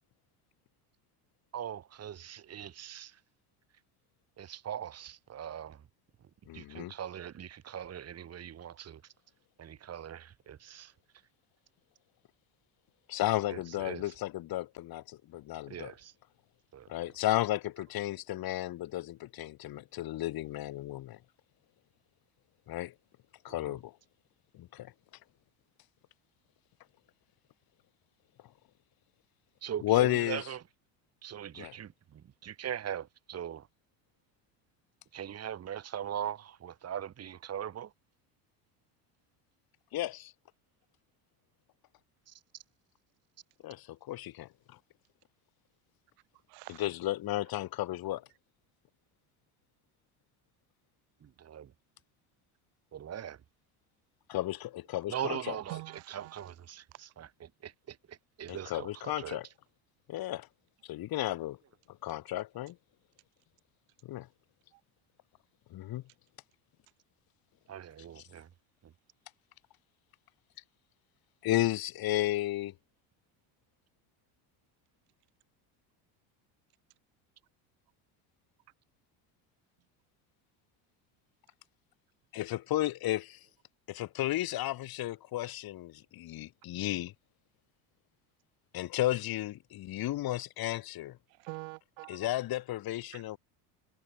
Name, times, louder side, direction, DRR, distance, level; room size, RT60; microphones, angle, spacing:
voice 1, 1.5-3.2 4.4-5.8 6.5-9.1 9.6-10.9 13.5-14.1 15.7-16.1 16.7-16.9 23.5-23.8 29.6-30.6 31.2-33.7 35.1-37.9 42.3-42.4 51.2-51.7 52.9-53.4 55.1-55.8 56.1-59.4 67.7-68.5 68.8-68.9, right 9 dB, 35° right, 1.9 m, -41 dB
voice 2, 6.5-6.9 13.1-15.9 16.9-21.2 22.7-22.9 23.4-23.9 24.5-24.9 29.8-30.4 31.6-31.7 39.9-40.3 43.6-44.5 46.8-48.3 54.3-55.6 58.5-59.5 60.1-60.5 60.8-61.6 61.9-62.8 64.0-64.3 65.7-66.0 71.4-72.7 82.3-83.4 83.9-87.1 88.7-91.2 92.1-93.4, left 15 dB, 55° left, 1.9 m, -33 dB
voice 3, 46.5-46.9 55.7-56.5 64.7-64.8 91.4-92.3 93.1-93.2, right 32 dB, 85° right, 7.9 m, -45 dB
supercardioid pair, 110°, 44 cm